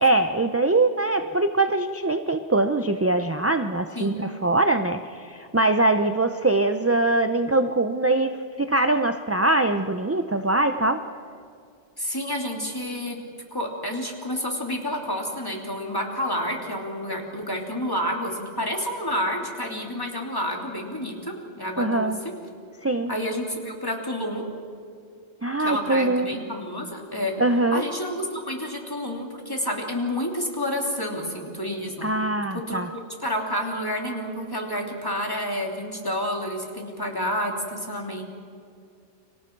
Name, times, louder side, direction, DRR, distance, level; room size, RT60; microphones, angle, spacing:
voice 1, 0.0-11.0 21.8-22.2 22.8-23.1 25.4-26.4 27.4-27.8 32.0-32.9, right 2 dB, 20° right, 7 dB, 0.4 m, -22 dB
voice 2, 12.0-13.2 13.5-22.3 23.1-24.4 25.6-27.3 27.7-32.1 32.7-32.8 33.2-38.2, equal, 20° left, 0 dB, 3.0 m, -29 dB
29.5 x 25.5 x 4.6 m, 2.4 s
omnidirectional pair, 1.2 m